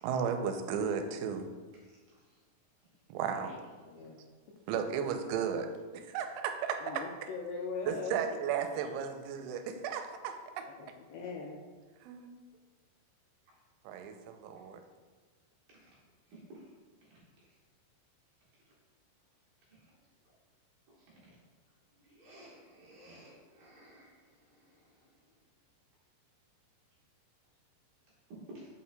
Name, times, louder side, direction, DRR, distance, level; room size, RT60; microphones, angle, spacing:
voice 1, 0.0-1.5 3.1-3.5 4.7-7.0 7.9-10.7 12.0-12.3 13.8-14.8, right 7 dB, 85° right, 6 dB, 3.0 m, -34 dB
voice 2, 3.9-4.2 6.8-8.2 10.8-11.5, left 4 dB, 85° left, -1 dB, 2.5 m, -40 dB
voice 3, 22.2-24.1 28.5-28.7, equal, 65° right, -7 dB, 2.4 m, -54 dB
7.8 x 5.6 x 2.2 m, 1.4 s
omnidirectional pair, 5.5 m